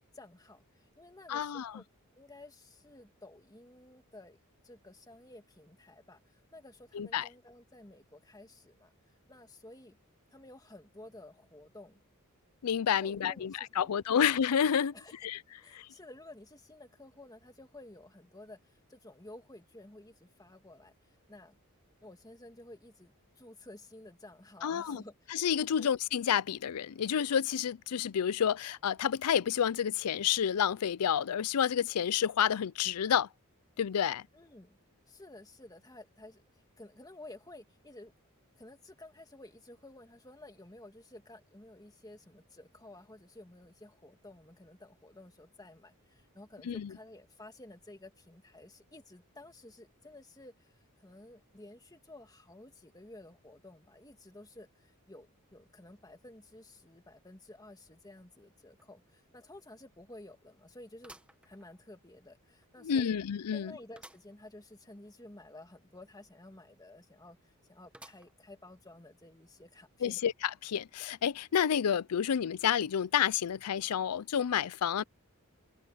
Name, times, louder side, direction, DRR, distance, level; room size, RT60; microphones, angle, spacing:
voice 1, 0.1-1.9 2.2-4.4 4.6-8.9 9.3-10.0 10.3-12.0 12.9-14.3 14.9-15.2 15.6-21.6 22.0-25.3 25.8-25.9 34.3-34.8 35.1-36.4 36.8-38.1 38.6-63.2 63.5-70.2, left 1 dB, 15° left, 2.2 m, -53 dB
voice 2, 1.3-1.7 6.9-7.3 12.6-14.9 15.2-15.4 15.7-15.9 24.6-25.0 25.3-33.3 33.8-34.2 46.7-46.9 62.8-63.7 70.0-70.3 70.6-75.0, left 8 dB, 90° left, 0.5 m, -29 dB
sound 1, 58.8-58.9 59.3-59.4 61.0-62.1 62.6-62.7 64.0-64.4 64.8-64.9 65.1-65.2 67.9-68.6 69.1-69.2 70.2-70.3, right 1 dB, 5° right, 1.2 m, -55 dB
head